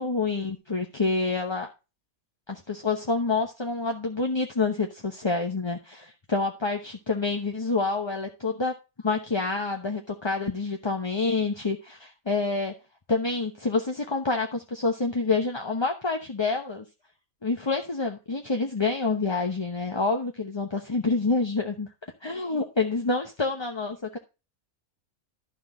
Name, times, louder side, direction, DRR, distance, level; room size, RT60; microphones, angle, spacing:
voice 1, 0.0-1.7 2.5-8.7 9.0-12.7 13.1-16.8 17.4-21.9 22.2-24.2, left 3 dB, 20° left, 3 dB, 0.8 m, -27 dB
12.0 x 6.0 x 3.9 m, 0.28 s
omnidirectional pair, 1.5 m